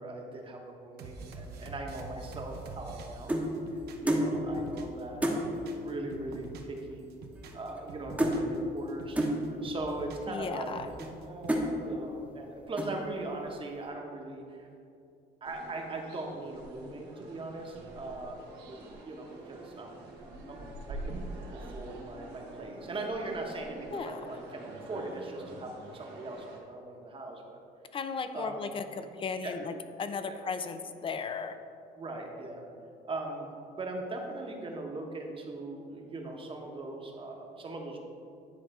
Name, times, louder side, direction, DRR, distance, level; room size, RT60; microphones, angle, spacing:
voice 1, 0.0-3.4 3.7-7.1 7.5-9.2 9.6-10.8 11.2-14.7 15.4-20.0 20.2-20.6 20.9-21.1 21.5-27.6 28.3-28.6 29.4-29.6 30.3-30.4 32.0-32.6 33.1-33.5 33.8-38.1, right 2 dB, 30° right, 1 dB, 1.1 m, -40 dB
sound 1, 1.0-5.0 5.3-6.8 7.1-8.6 8.9-10.3 10.7-11.7, right 3 dB, 70° right, 0.8 m, -46 dB
sound 2, 2.4-3.5 4.1-4.3 4.7-4.8 5.2-5.4 6.3-6.4 6.6-7.0 7.2-7.9 8.2-8.4 9.2-9.4 10.1-10.2 10.8-11.1 11.5-11.7 12.2-12.5 12.8-13.1, right 1 dB, 10° right, 1.0 m, -30 dB
voice 2, 10.3-10.9 23.9-24.2 27.9-31.6, left 5 dB, 30° left, 9 dB, 0.5 m, -36 dB
sound 3, 15.4-26.6, right 2 dB, 85° right, 1.4 m, -45 dB
10.0 x 3.5 x 4.9 m, 2.5 s
cardioid pair, 110°, 17 cm